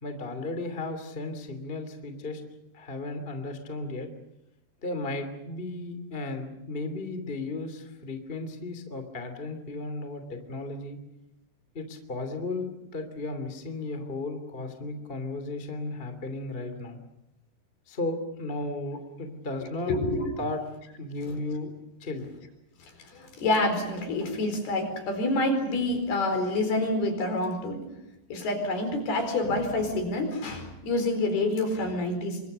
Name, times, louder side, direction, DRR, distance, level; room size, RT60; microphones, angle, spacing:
voice 1, 0.0-2.4 2.7-4.1 4.8-11.0 11.7-17.0 17.9-19.9 20.4-20.6 21.0-21.7 22.0-22.3, left 2 dB, 15° left, 7 dB, 2.1 m, -35 dB
voice 2, 19.8-20.4 21.3-21.4 22.8-27.9 28.3-32.4, left 2 dB, 60° left, 7 dB, 6.3 m, -27 dB
28.0 x 24.5 x 6.7 m, 0.86 s
omnidirectional pair, 5.1 m